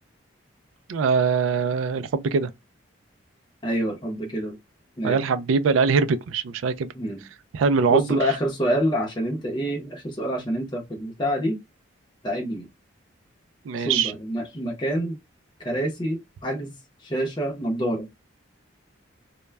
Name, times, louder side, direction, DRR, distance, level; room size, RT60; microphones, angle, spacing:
voice 1, 0.9-2.5 5.0-6.9 7.5-8.2 13.7-14.1, right 5 dB, 80° right, 0.3 m, -22 dB
voice 2, 3.6-4.6 5.0-5.2 6.9-7.2 7.9-11.6 12.2-12.7 13.8-15.2 15.6-16.7 17.0-18.1, equal, 20° left, 0.6 m, -27 dB
2.2 x 2.1 x 3.3 m
head